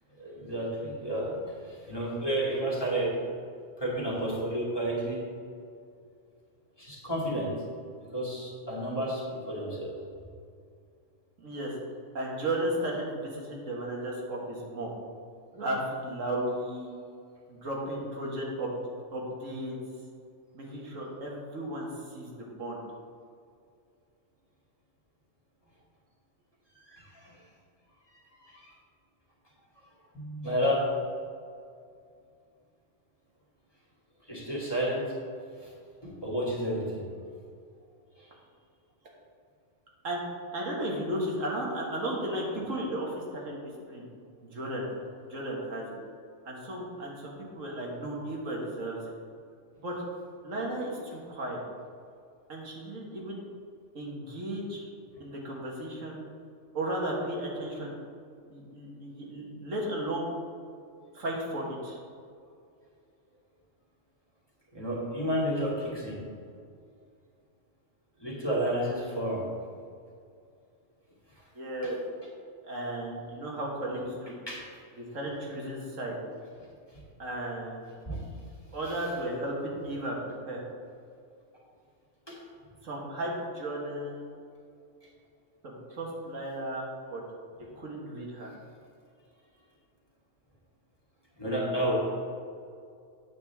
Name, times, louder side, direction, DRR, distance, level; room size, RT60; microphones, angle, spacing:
voice 1, 0.2-1.3 1.7-3.1 3.8-5.2 6.8-7.5 8.1-9.9 26.9-27.3 28.4-28.7 30.1-30.8 34.3-35.0 35.6-35.7 36.0-36.8 64.7-66.2 68.2-69.4 74.5-74.6 78.1-78.2 82.3-82.4 91.4-91.9, right 1 dB, 20° left, -6 dB, 2.3 m, -31 dB
voice 2, 11.4-11.7 12.1-14.9 15.5-16.9 17.5-18.8 19.1-19.8 20.5-22.8 40.0-40.2 40.5-43.6 43.9-44.0 44.4-44.9 45.3-46.0 46.5-49.0 49.8-49.9 50.4-51.6 52.5-53.4 53.9-54.9 55.2-56.2 56.7-57.9 58.5-60.3 61.1-62.0 71.5-72.0 72.6-74.3 75.0-76.2 77.2-77.8 78.7-80.2 80.5-80.6 82.8-84.2 85.6-87.2 87.8-88.5, right 1 dB, 80° right, -2 dB, 1.9 m, -34 dB
8.8 x 8.0 x 3.6 m, 2.4 s
omnidirectional pair, 1.3 m